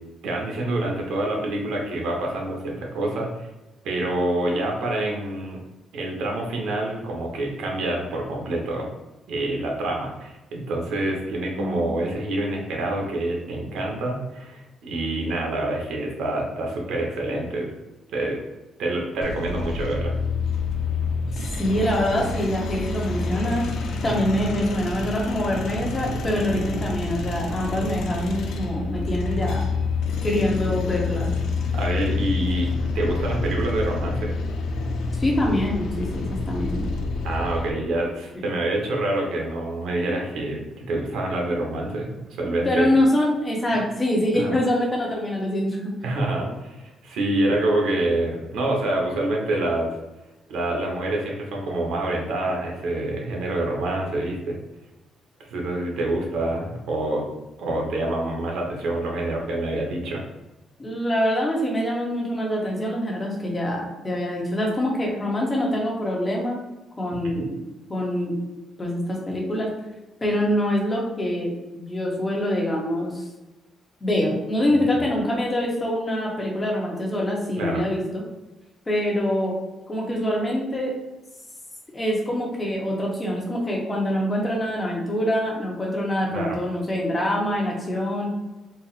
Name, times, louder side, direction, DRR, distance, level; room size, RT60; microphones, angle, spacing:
voice 1, 0.2-3.5 3.8-5.6 5.9-8.9 9.3-17.7 18.1-18.4 18.8-20.1 24.0-24.1 30.6-30.8 31.7-34.3 37.2-42.9 44.4-44.5 46.0-49.9 50.5-54.6 55.4-57.3 57.6-60.2 67.2-67.5 74.7-74.8 77.6-77.8 86.3-86.6, right 1 dB, 85° right, 0 dB, 1.0 m, -27 dB
voice 2, 11.6-12.0 21.6-23.7 24.0-29.7 30.2-31.3 35.1-36.9 42.6-45.9 60.8-66.6 67.0-67.5 67.9-68.4 68.8-69.7 70.2-73.3 74.0-78.2 78.9-79.5 79.9-80.9 81.9-88.3, left 1 dB, 15° left, -2 dB, 0.9 m, -25 dB
sound 1, 19.2-37.7, left 3 dB, 75° left, 0.5 m, -28 dB
4.1 x 2.0 x 4.0 m, 1.0 s
cardioid pair, 170°, 0 cm